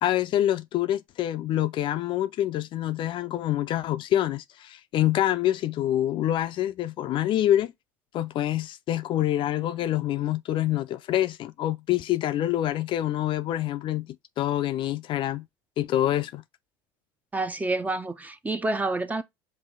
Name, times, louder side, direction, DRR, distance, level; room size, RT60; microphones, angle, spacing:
voice 1, 0.0-7.7 8.1-15.5 15.8-16.4, left 12 dB, 45° left, 0.4 m, -26 dB
voice 2, 17.3-19.2, right 2 dB, 15° right, 0.6 m, -28 dB
5.4 x 2.6 x 3.7 m
hypercardioid pair, 80°, 11 cm